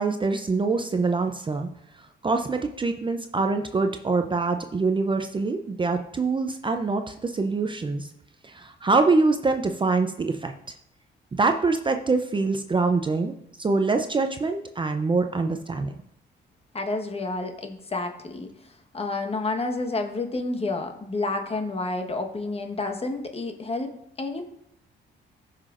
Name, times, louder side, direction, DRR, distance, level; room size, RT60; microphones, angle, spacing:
voice 1, 0.0-1.7 2.2-8.1 8.4-10.5 11.3-15.9, right 3 dB, 25° right, 6 dB, 0.5 m, -24 dB
voice 2, 16.7-24.4, left 2 dB, 30° left, 5 dB, 1.2 m, -30 dB
14.0 x 5.8 x 2.5 m, 0.74 s
cardioid pair, 90°, 20 cm